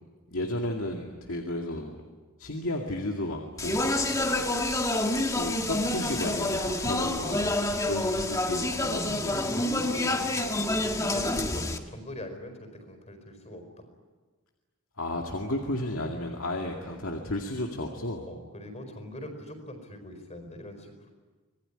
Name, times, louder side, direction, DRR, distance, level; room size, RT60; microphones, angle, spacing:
voice 1, 0.3-1.9 2.4-3.9 5.3-9.3 15.0-18.3, left 1 dB, 65° left, 2 dB, 2.3 m, -33 dB
Speech, 3.6-11.8, left 1 dB, 15° left, 1.5 m, -28 dB
voice 2, 4.1-4.5 9.0-13.9 16.9-17.0 18.3-21.1, left 1 dB, 30° left, 7 dB, 4.8 m, -43 dB
26.0 x 20.5 x 10.0 m, 1.4 s
head